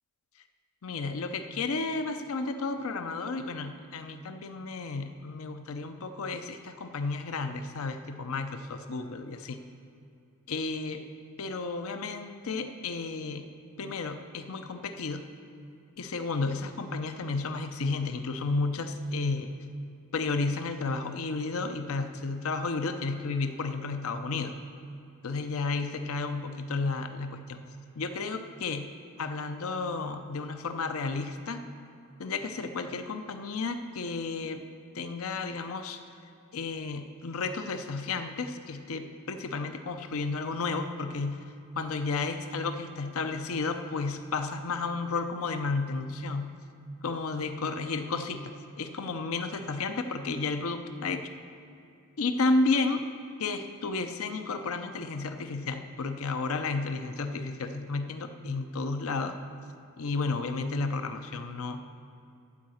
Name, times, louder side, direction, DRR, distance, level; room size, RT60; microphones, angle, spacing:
voice 1, 0.8-9.6 10.5-11.0 11.4-13.4 13.8-15.2 16.0-19.5 20.1-24.5 25.2-27.6 28.0-28.9 29.2-31.6 32.2-34.6 34.9-36.0 36.5-41.4 41.8-46.5 47.0-51.3 52.2-53.0 53.4-59.3 60.0-61.8, left 3 dB, 65° left, 8 dB, 0.6 m, -32 dB
12.5 x 4.8 x 7.8 m, 2.6 s
head